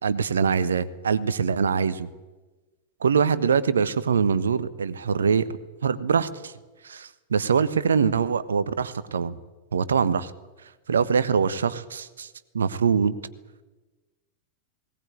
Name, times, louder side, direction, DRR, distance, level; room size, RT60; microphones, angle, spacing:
voice 1, 0.0-2.1 3.0-5.5 5.8-6.5 6.8-9.3 9.7-10.3 10.9-12.3 12.5-13.2, right 6 dB, 70° right, 15 dB, 1.2 m, -23 dB
20.0 x 18.5 x 9.5 m, 1.2 s
figure-of-eight pair, 90°, 0 cm